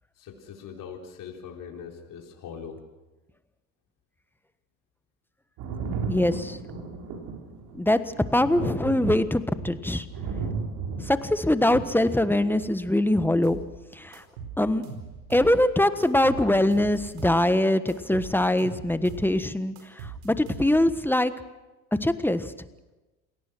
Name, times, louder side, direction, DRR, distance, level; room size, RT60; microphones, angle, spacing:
voice 1, 0.2-2.8, left 7 dB, 50° left, 1 dB, 4.0 m, -41 dB
Thunder, 5.6-12.9 14.1-14.2, right 5 dB, 60° right, 4.5 m, -34 dB
voice 2, 6.1-6.6 7.8-8.0 8.3-10.0 11.1-13.6 14.0-14.2 14.6-14.8 15.3-19.7 20.2-21.3 22.0-22.5, left 1 dB, 5° left, 12 dB, 1.3 m, -23 dB
sound 1, 13.4-13.7 14.1-15.6 16.0-17.4 17.9-19.3 19.7-21.0, right 5 dB, 75° right, 4.9 m, -40 dB
28.0 x 18.0 x 6.3 m, 1.1 s
hypercardioid pair, 75°, 41 cm